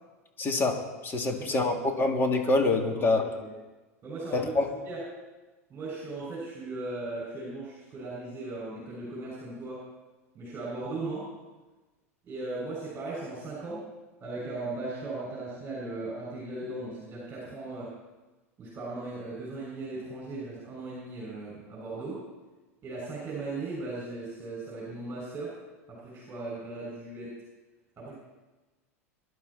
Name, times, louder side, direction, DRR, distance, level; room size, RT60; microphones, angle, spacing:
voice 1, 0.4-3.3 4.3-4.7, left 2 dB, 25° left, 2 dB, 3.0 m, -26 dB
voice 2, 1.2-1.8 2.9-3.5 4.0-4.5 4.8-5.0 5.7-9.9 10.3-11.3 12.2-13.8 14.2-17.9 18.6-22.2 22.8-25.6 25.9-27.3 28.0-28.1, right 2 dB, 25° right, -5 dB, 6.8 m, -37 dB
23.5 x 11.0 x 4.4 m, 1.2 s
hypercardioid pair, 90°, 8 cm